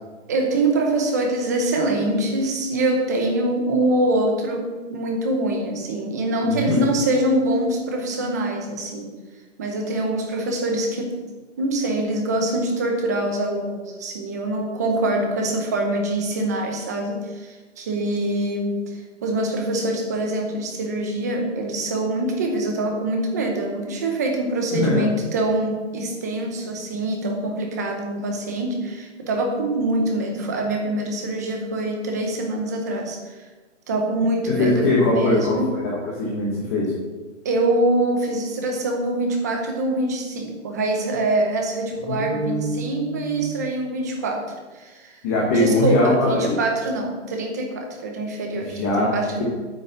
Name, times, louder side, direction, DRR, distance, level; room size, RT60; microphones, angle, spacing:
voice 1, 0.3-9.1 9.6-11.2 11.6-33.4 33.9-35.7 37.4-45.2 45.5-49.4, right 2 dB, 15° right, 2 dB, 0.7 m, -24 dB
voice 2, 6.4-6.8 24.7-25.1 34.5-36.9 42.1-43.6 45.2-46.6 48.7-49.1, left 2 dB, 15° left, -5 dB, 0.8 m, -22 dB
9.0 x 6.1 x 7.9 m, 1.3 s
hypercardioid pair, 175°, 36 cm